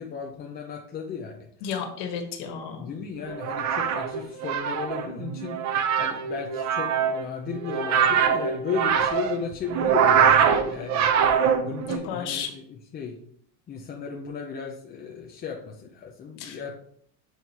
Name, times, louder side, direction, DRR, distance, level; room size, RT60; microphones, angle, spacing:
voice 1, 0.0-1.5 2.7-11.1 11.6-13.2 13.7-16.7, left 6 dB, 20° left, 1 dB, 0.4 m, -35 dB
voice 2, 1.6-2.9 11.9-12.5 16.4-16.6, left 7 dB, 75° left, 4 dB, 1.5 m, -32 dB
sound 1, 3.3-12.0, right 7 dB, 35° right, 0.6 m, -23 dB
7.8 x 2.7 x 4.5 m, 0.64 s
cardioid pair, 140°, 49 cm